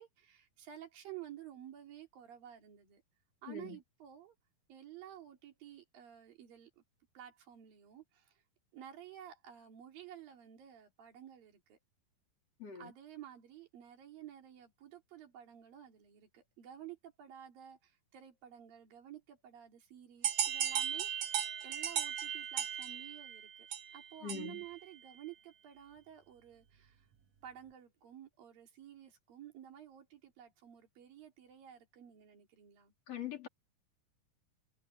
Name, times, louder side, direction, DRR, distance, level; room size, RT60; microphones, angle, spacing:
voice 1, 0.0-3.0 3.4-4.4 4.7-6.8 7.1-8.4 8.7-11.8 12.7-23.7 23.9-27.1 27.4-32.9, right 11 dB, 75° right, 4.9 m, -52 dB
voice 2, 3.5-3.8 12.6-12.9 24.2-24.6 33.1-33.5, left 8 dB, 45° left, 5.2 m, -43 dB
sound 1, 20.2-24.7, right 9 dB, 55° right, 1.9 m, -36 dB
omnidirectional pair, 4.2 m